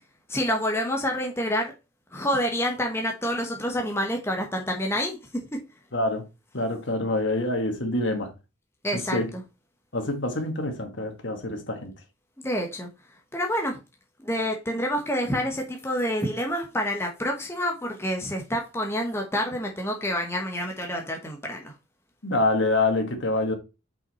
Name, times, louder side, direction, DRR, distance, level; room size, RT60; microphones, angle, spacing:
voice 1, 0.3-1.7 2.1-5.2 5.5-5.6 8.8-9.4 12.4-12.9 13.3-13.8 14.2-21.7, equal, 10° left, 1.0 m, -28 dB
voice 2, 5.9-6.2 6.5-8.3 8.9-9.3 9.9-11.9 22.2-23.6, left 2 dB, 60° left, 1.6 m, -26 dB
5.7 x 5.6 x 4.1 m
head